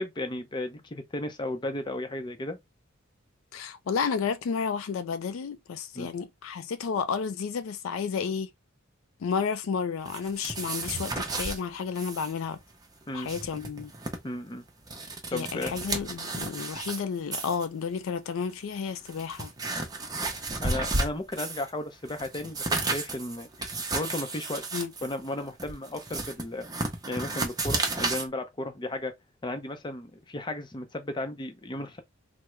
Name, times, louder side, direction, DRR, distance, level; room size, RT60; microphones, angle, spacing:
voice 1, 0.0-2.6 5.9-6.1 13.1-13.3 14.2-14.6 15.3-15.8 20.6-24.6 25.0-26.7 27.1-29.1 29.4-32.0, left 1 dB, 20° left, 0.6 m, -34 dB
voice 2, 3.5-8.5 9.2-12.6 13.1-13.9 15.3-19.5 24.7-24.9, left 6 dB, 70° left, 0.4 m, -31 dB
sound 1, 10.0-11.6 11.9-12.3 12.6-12.7 13.1-14.2 14.7-17.0 17.3-17.6 18.4-18.5 19.0-21.7 22.0-28.3, right 2 dB, 20° right, 0.6 m, -32 dB
3.4 x 2.0 x 3.0 m
head